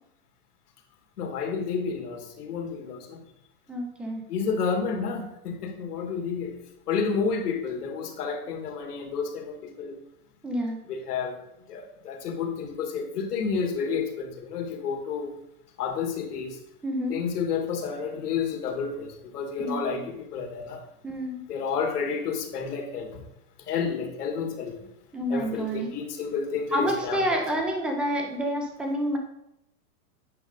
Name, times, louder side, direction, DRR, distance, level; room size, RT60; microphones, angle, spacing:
voice 1, 1.2-3.2 4.3-6.6 6.9-10.0 10.9-11.4 11.7-15.3 15.8-16.6 17.1-20.8 21.5-23.1 23.7-24.8 25.3-27.4, left 5 dB, 75° left, 3 dB, 1.9 m, -30 dB
voice 2, 3.7-4.2 10.4-10.8 16.8-17.2 19.6-20.1 21.0-21.4 25.1-25.9 26.7-29.2, equal, ahead, 2 dB, 0.4 m, -28 dB
8.8 x 5.0 x 3.8 m, 0.83 s
hypercardioid pair, 140°, 46 cm